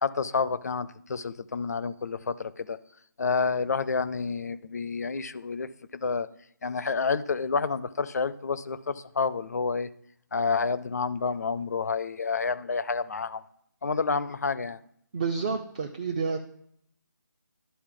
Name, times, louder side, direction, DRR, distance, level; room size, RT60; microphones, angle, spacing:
voice 1, 0.0-2.8 3.2-6.3 6.6-9.9 10.3-13.4 13.8-14.8, left 5 dB, 50° left, 15 dB, 0.5 m, -29 dB
voice 2, 15.1-16.4, right 5 dB, 20° right, 5 dB, 0.4 m, -29 dB
12.0 x 4.2 x 3.7 m, 0.68 s
figure-of-eight pair, 155°, 11 cm